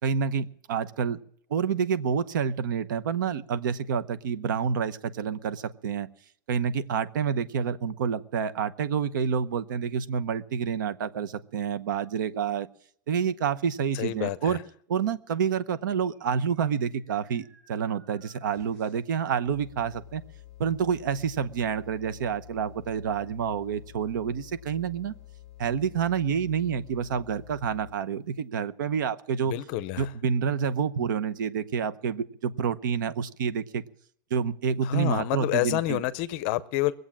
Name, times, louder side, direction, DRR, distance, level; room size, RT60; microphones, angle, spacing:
voice 1, 0.0-1.2 1.5-6.1 6.5-12.7 13.1-14.6 14.9-20.2 20.6-25.1 25.6-29.5 30.0-33.8 34.3-36.0, right 7 dB, 75° right, 0.9 m, -28 dB
voice 2, 13.9-14.6 29.4-30.1 34.8-36.9, left 15 dB, 35° left, 0.6 m, -28 dB
sound 1, 15.7-19.2, right 2 dB, 40° right, 6.3 m, -61 dB
sound 2, 19.4-28.1, left 13 dB, 5° left, 1.0 m, -49 dB
21.0 x 8.0 x 7.4 m
supercardioid pair, 180°, 11 cm